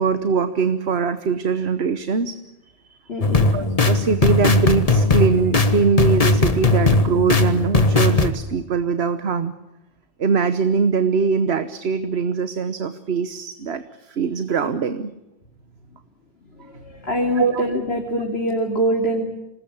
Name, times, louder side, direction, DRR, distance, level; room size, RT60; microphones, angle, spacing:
voice 1, 0.0-2.4 2.9-3.1 3.5-9.5 10.2-15.1 17.4-17.6, right 5 dB, 85° right, 11 dB, 1.3 m, -22 dB
voice 2, 3.1-3.5 16.6-19.3, equal, 80° left, 1 dB, 3.2 m, -24 dB
sound 1, 3.2-8.3, left 3 dB, 35° left, 1.6 m, -18 dB
26.5 x 20.5 x 8.7 m, 0.96 s
omnidirectional pair, 1.0 m